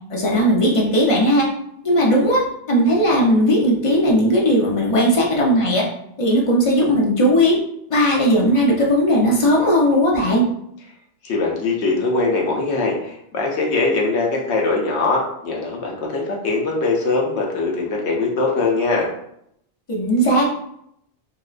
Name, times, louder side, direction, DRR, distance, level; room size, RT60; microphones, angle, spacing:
voice 1, 0.1-1.5 1.8-2.4 2.7-5.8 6.2-7.6 7.9-10.4 19.9-20.5, equal, 35° left, -3 dB, 0.6 m, -17 dB
voice 2, 11.2-19.1, left 3 dB, 75° left, -1 dB, 0.9 m, -21 dB
3.8 x 2.1 x 2.4 m, 0.73 s
omnidirectional pair, 1.2 m